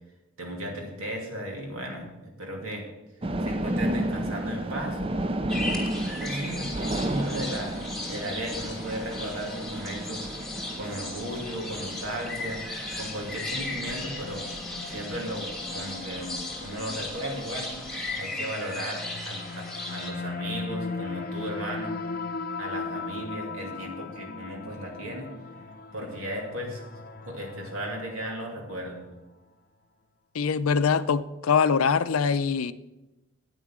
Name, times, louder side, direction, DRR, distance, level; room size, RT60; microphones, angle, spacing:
voice 1, 0.4-2.9 3.4-5.0 6.2-7.7 8.1-10.3 10.7-12.6 13.0-14.5 14.8-17.8 18.2-22.0 22.6-25.3 25.9-26.8 27.2-29.1, right 1 dB, 80° right, 2.6 m, -35 dB
sound 1, 3.2-18.2, right 1 dB, 25° right, 0.5 m, -34 dB
sound 2, 5.5-20.1, left 2 dB, ahead, 1.5 m, -37 dB
sound 3, 13.6-28.9, left 3 dB, 45° left, 0.7 m, -38 dB
voice 2, 30.3-32.7, left 6 dB, 80° left, 0.5 m, -23 dB
9.5 x 9.0 x 6.2 m
head